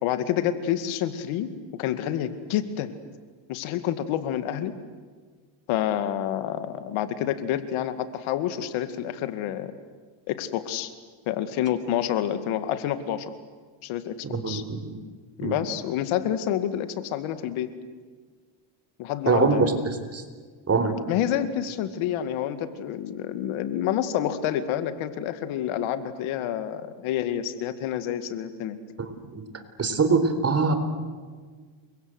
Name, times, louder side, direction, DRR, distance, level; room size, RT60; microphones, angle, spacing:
voice 1, 0.0-2.9 3.5-4.8 5.7-9.7 10.3-10.9 11.3-13.3 13.8-14.1 14.4-14.6 15.4-17.7 19.0-19.7 21.1-28.8, left 10 dB, 85° left, 11 dB, 2.3 m, -28 dB
voice 2, 14.2-15.0 15.4-15.6 19.3-19.7 20.1-20.2 20.7-20.9 29.0-29.4 29.8-30.8, right 4 dB, 30° right, 9 dB, 4.1 m, -23 dB
29.0 x 24.5 x 8.0 m, 1.5 s
cardioid pair, 110°, 47 cm